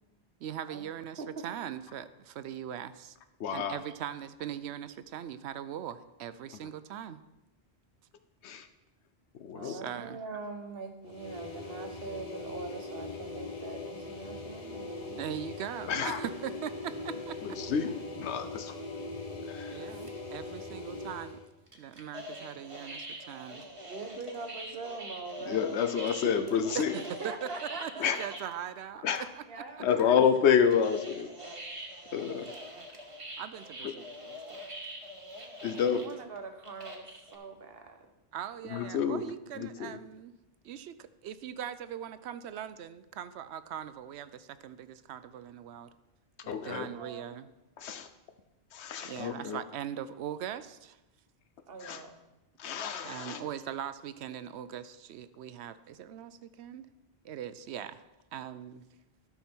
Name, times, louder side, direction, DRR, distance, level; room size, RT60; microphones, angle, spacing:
voice 1, 0.4-3.2 3.5-7.2 9.6-10.2 15.2-17.4 19.7-21.4 21.7-23.7 26.7-29.0 32.3-32.5 32.8-32.9 33.4-34.6 35.7-36.0 38.3-40.3 40.6-45.9 46.6-47.5 49.0-51.0 53.0-56.9 57.2-58.0 58.3-58.8, right 9 dB, 80° right, 13 dB, 0.8 m, -40 dB
voice 2, 3.4-3.8 6.6-6.7 8.4-8.7 9.4-9.8 15.9-16.2 17.4-18.7 19.5-19.9 25.4-26.9 28.0-28.2 29.0-29.2 29.8-31.3 32.1-32.5 33.8-33.9 35.6-36.0 38.6-39.2 39.5-40.0 46.5-46.9 47.8-48.1 48.7-49.6 51.8-52.0 52.6-53.4, left 7 dB, 85° left, 9 dB, 1.0 m, -29 dB
voice 3, 9.5-15.3 23.8-25.8 26.2-26.4 26.6-26.8 27.0-28.4 29.5-29.8 35.9-38.1 46.4-47.4 51.7-52.2, right 4 dB, 65° right, 6 dB, 1.2 m, -43 dB
sound 1, 11.0-21.5, left 2 dB, 35° left, 1.0 m, -41 dB
sound 2, 19.9-20.2 21.7-28.5 28.9-29.0 29.2-29.5 29.9-37.4, equal, 30° right, 1.3 m, -44 dB
12.5 x 5.9 x 4.4 m, 0.98 s
omnidirectional pair, 1.1 m